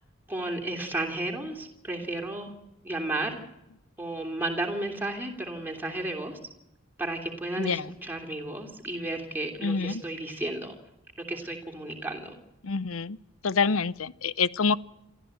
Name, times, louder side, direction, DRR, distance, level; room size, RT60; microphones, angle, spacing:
voice 1, 0.3-2.6 2.8-3.4 4.0-6.4 7.0-10.7 11.3-12.3, right 2 dB, 10° right, 1 dB, 3.1 m, -33 dB
voice 2, 7.6-7.9 9.6-10.0 12.6-13.2 13.4-14.8, left 5 dB, 80° left, 18 dB, 0.7 m, -26 dB
27.0 x 13.5 x 8.0 m, 0.90 s
head